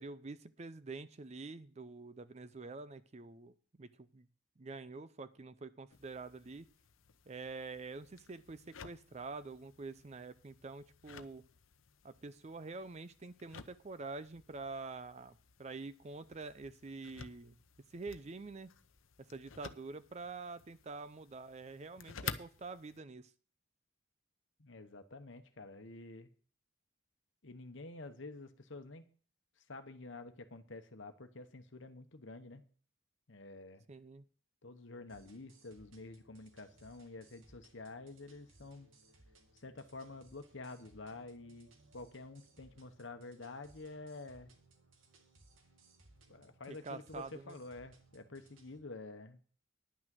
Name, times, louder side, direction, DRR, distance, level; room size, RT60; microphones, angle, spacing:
voice 1, 0.0-4.3 4.6-6.7 7.3-11.4 12.0-17.6 17.9-18.7 19.2-23.3 33.9-34.2 46.7-47.6, right 3 dB, 35° right, 14 dB, 0.5 m, -47 dB
sound 1, 5.9-23.0, left 6 dB, 85° left, 0.8 m, -52 dB
voice 2, 24.6-26.3 27.4-29.0 29.7-32.6 33.3-33.8 34.6-38.9 39.5-44.5 46.3-49.4, left 2 dB, 65° left, 8 dB, 1.1 m, -49 dB
sound 2, 35.1-48.8, right 2 dB, 90° right, 2.1 m, -65 dB
10.5 x 6.2 x 7.6 m, 0.42 s
head